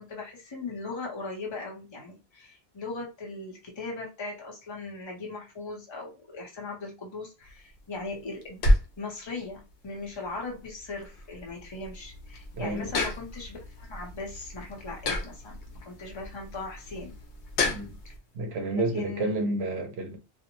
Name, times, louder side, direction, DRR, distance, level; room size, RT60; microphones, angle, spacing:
voice 1, 0.0-8.6 9.0-17.2 18.0-18.1 18.9-19.3, left 3 dB, 30° left, 0.7 m, -39 dB
sound 1, 7.4-18.2, left 1 dB, 75° left, 0.9 m, -32 dB
voice 2, 12.5-12.9 17.7-18.0 18.3-20.2, right 2 dB, 75° right, 0.9 m, -30 dB
2.5 x 2.0 x 2.9 m
omnidirectional pair, 1.1 m